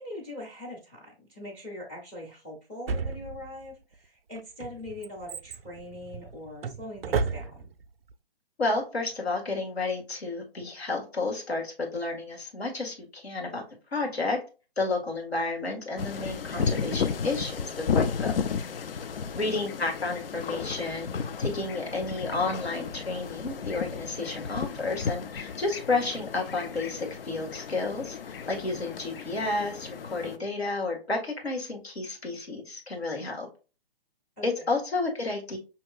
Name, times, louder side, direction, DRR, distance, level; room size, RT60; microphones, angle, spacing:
voice 1, 0.0-7.7 19.3-19.5 34.4-34.7, left 1 dB, 10° left, -2 dB, 0.5 m, -42 dB
Drawer open or close, 2.9-3.7 4.4-7.8 8.1-8.2, right 5 dB, 70° right, 0.4 m, -33 dB
voice 2, 8.6-13.6 13.9-14.4 14.8-18.4 19.4-21.1 21.4-33.5 34.4-35.6, left 3 dB, 85° left, 1 dB, 1.7 m, -31 dB
sound 1, 16.0-30.4, left 6 dB, 65° left, 0.5 m, -33 dB
5.4 x 2.9 x 2.4 m, 0.32 s
figure-of-eight pair, 140°, 31 cm